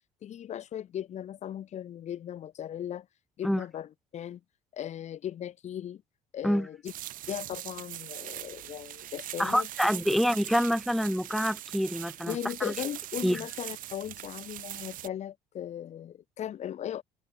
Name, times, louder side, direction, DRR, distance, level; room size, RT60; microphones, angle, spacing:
voice 1, 0.2-3.1 3.4-4.4 4.7-6.0 6.3-6.9 7.3-9.7 12.3-17.0, left 10 dB, 50° left, 4.5 m, -37 dB
sound 1, 6.9-15.1, right 14 dB, 65° right, 6.9 m, -41 dB
voice 2, 9.4-12.4 12.6-12.7 13.2-13.4, equal, ahead, 3.9 m, -26 dB
open air
cardioid pair, 135°, 15 cm